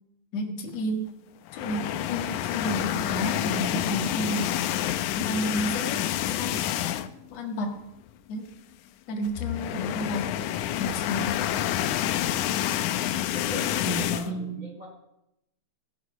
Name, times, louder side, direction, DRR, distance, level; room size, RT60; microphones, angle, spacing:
voice 1, 0.3-1.1 1.5-4.5 5.1-6.6 7.3-7.7 8.3-8.5 9.1-10.2 10.8-11.4 13.4-14.6, equal, 60° left, 2 dB, 2.9 m, -31 dB
sound 1, 1.5-7.3 7.7-7.8 8.1-8.2 9.2-14.3, left 12 dB, 85° left, 2.1 m, -28 dB
voice 2, 13.1-14.9, left 1 dB, 25° right, 0 dB, 4.4 m, -41 dB
17.0 x 10.0 x 6.1 m, 0.84 s
omnidirectional pair, 3.4 m